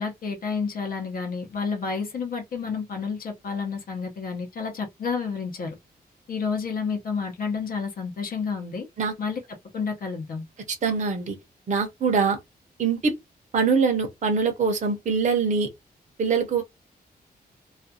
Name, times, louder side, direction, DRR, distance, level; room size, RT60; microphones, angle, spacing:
voice 1, 0.0-5.8 6.3-8.9 9.2-9.4 9.7-10.5, left 5 dB, 60° left, 0.7 m, -30 dB
voice 2, 10.8-11.4 11.7-12.4 12.8-13.1 13.5-15.7 16.2-16.6, right 5 dB, 50° right, 0.6 m, -23 dB
2.4 x 2.2 x 2.6 m
wide cardioid pair, 170°, 16 cm